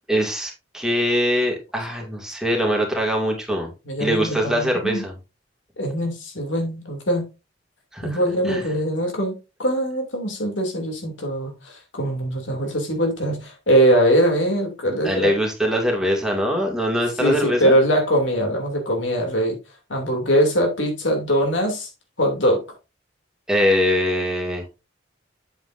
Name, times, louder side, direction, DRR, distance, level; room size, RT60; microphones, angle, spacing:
voice 1, 0.1-3.7 4.0-5.2 7.9-8.2 8.4-8.7 15.0-17.8 23.5-24.6, equal, 5° right, 2.3 m, -22 dB
voice 2, 3.9-5.0 5.8-7.2 8.0-9.3 9.6-15.3 17.2-19.6 19.9-21.9 22.2-22.6, equal, 90° left, 2.8 m, -22 dB
8.0 x 7.8 x 2.6 m
head